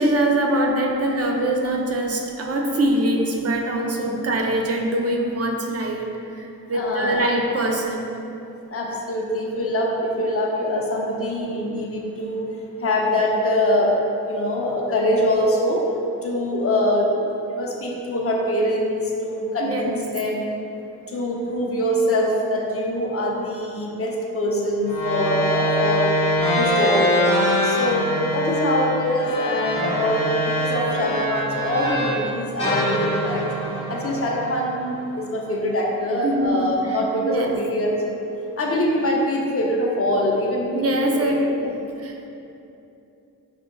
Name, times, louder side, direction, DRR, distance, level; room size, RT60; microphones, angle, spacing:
voice 1, 0.0-8.0 19.6-20.0 36.2-37.5 40.7-41.5 42.0-42.1, right 1 dB, 40° right, 1 dB, 0.5 m, -23 dB
voice 2, 6.7-7.3 8.7-12.4 12.8-14.0 14.2-15.8 16.2-17.1 17.5-20.5 21.1-26.1 26.5-27.2 27.6-28.1 28.3-33.5 33.9-38.2 38.6-40.8 41.1-41.4, left 1 dB, 40° left, -2 dB, 0.6 m, -23 dB
sound 1, 24.8-32.2 32.6-35.0, left 1 dB, 15° left, 1.0 m, -23 dB
6.3 x 2.3 x 2.2 m, 2.8 s
cardioid pair, 65°, 37 cm